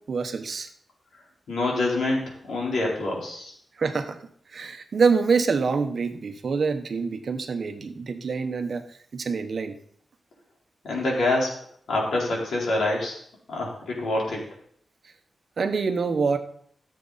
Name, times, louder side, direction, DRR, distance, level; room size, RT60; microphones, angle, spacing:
voice 1, 0.1-0.7 3.8-4.2 4.5-8.8 9.1-9.7 15.6-16.4, right 5 dB, 50° right, 7 dB, 1.0 m, -25 dB
voice 2, 1.5-2.2 2.5-3.5 10.8-11.6 11.9-13.1 13.5-14.4, left 2 dB, 85° left, -3 dB, 4.1 m, -26 dB
14.5 x 7.5 x 4.2 m, 0.63 s
wide cardioid pair, 165°, 0 cm